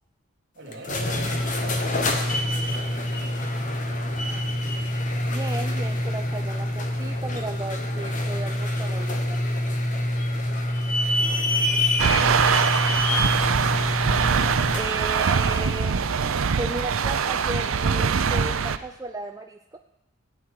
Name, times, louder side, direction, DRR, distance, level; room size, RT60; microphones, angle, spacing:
voice 1, 0.5-3.6 3.9-4.2 11.2-12.3, right 1 dB, 55° right, -1 dB, 3.4 m, -42 dB
sound 1, 0.7-15.0, left 1 dB, 35° left, 1.2 m, -26 dB
voice 2, 5.2-9.4 14.7-16.2 16.6-19.8, right 2 dB, 15° right, 4 dB, 0.4 m, -35 dB
sound 2, 12.0-18.8, right 6 dB, 75° right, 0.5 m, -23 dB
16.0 x 8.8 x 4.8 m, 0.87 s
head